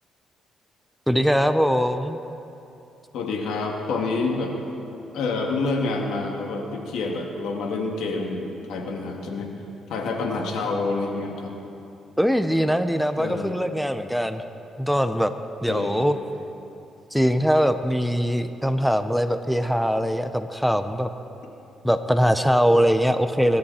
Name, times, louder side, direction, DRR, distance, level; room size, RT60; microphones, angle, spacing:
voice 1, 1.1-2.2 12.2-14.4 14.8-15.3 15.6-16.2 17.1-21.1 21.8-23.6, equal, ahead, 9 dB, 0.7 m, -22 dB
voice 2, 3.1-4.5 5.1-9.5 9.9-11.6 13.2-13.6 15.7-16.1, left 3 dB, 80° left, 1 dB, 2.2 m, -27 dB
22.5 x 12.0 x 4.3 m, 2.9 s
cardioid pair, 90°, 0 cm